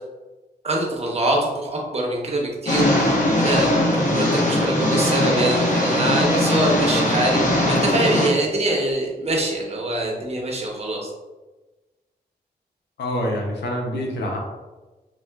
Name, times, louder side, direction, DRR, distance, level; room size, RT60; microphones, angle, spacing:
voice 1, 0.6-11.1, right 1 dB, 40° right, -1 dB, 0.8 m, -24 dB
sound 1, 2.7-8.3, left 1 dB, 50° left, 0.7 m, -20 dB
voice 2, 13.0-14.4, left 1 dB, 85° left, 0 dB, 0.6 m, -26 dB
3.6 x 2.3 x 2.3 m, 1.2 s
cardioid pair, 60°, 17 cm